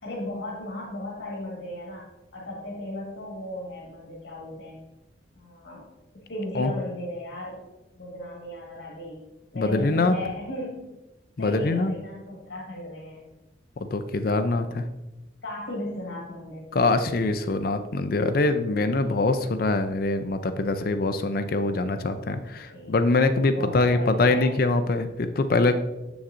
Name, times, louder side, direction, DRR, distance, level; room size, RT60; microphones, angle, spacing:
voice 1, 0.0-4.8 5.3-5.8 6.1-7.6 7.9-9.2 9.5-10.9 11.4-13.2 15.4-16.7 22.7-22.9 23.5-24.6, left 1 dB, 85° left, -4 dB, 1.7 m, -36 dB
voice 2, 9.5-10.1 11.4-11.9 13.8-14.8 16.7-25.7, left 3 dB, 50° left, 9 dB, 0.4 m, -24 dB
7.4 x 7.0 x 2.6 m, 1.0 s
head